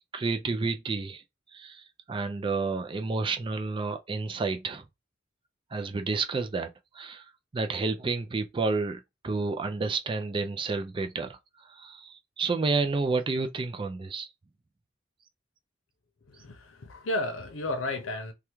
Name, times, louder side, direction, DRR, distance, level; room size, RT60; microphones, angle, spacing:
voice 1, 0.1-1.2 1.5-4.8 5.7-7.2 7.5-11.4 11.7-14.3, right 3 dB, 25° right, 0.3 m, -30 dB
voice 2, 16.3-18.3, left 1 dB, 90° left, 0.7 m, -33 dB
3.4 x 2.3 x 3.0 m
head